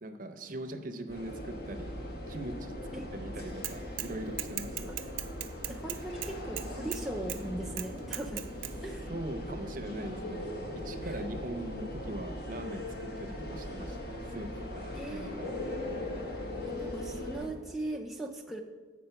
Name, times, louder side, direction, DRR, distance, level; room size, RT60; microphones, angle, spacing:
voice 1, 0.0-1.9 2.3-2.7 3.1-4.9 9.1-10.5 10.8-15.5, right 1 dB, 45° right, 7 dB, 0.6 m, -41 dB
sound 1, 1.1-17.5, left 1 dB, 55° left, 1.2 m, -39 dB
Bicycle / Mechanisms, 3.6-4.1 4.4-7.0 7.3-7.4 7.8-8.7, right 15 dB, 85° right, 0.5 m, -37 dB
voice 2, 5.7-8.5 8.8-9.1 11.0-11.2 14.9-15.3 16.7-18.6, right 1 dB, ahead, -1 dB, 0.4 m, -39 dB
7.8 x 5.0 x 5.7 m, 1.4 s
head